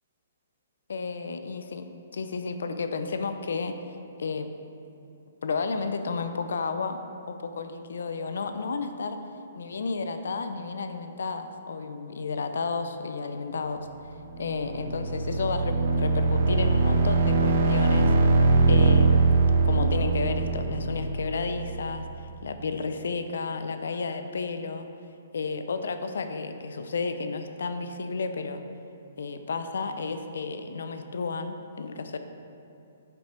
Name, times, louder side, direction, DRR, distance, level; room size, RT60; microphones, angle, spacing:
voice 1, 0.9-3.8 4.2-4.5 5.4-7.0 7.3-9.2 9.6-13.9 14.4-18.1 18.7-19.3 19.6-24.9 25.3-28.6 29.2-32.2, left 4 dB, 75° left, 8 dB, 0.4 m, -32 dB
sound 1, 14.1-21.9, right 3 dB, 40° right, 0.5 m, -22 dB
5.6 x 5.2 x 4.4 m, 2.7 s
hypercardioid pair, 175°, 0 cm